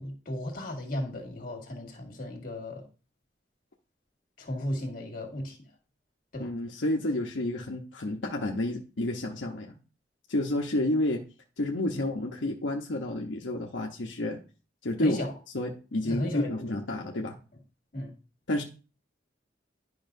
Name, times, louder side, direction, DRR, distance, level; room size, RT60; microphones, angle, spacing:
voice 1, 0.0-2.8 4.4-5.6 6.3-6.5 11.9-12.0 15.0-15.3 16.0-16.7 17.9-18.1, left 1 dB, 50° left, 1.9 m, -34 dB
voice 2, 6.4-9.8 10.3-11.2 11.6-14.4 14.8-15.2 15.5-17.4 18.5-18.6, left 1 dB, 80° left, 0.9 m, -30 dB
11.0 x 5.5 x 2.7 m
head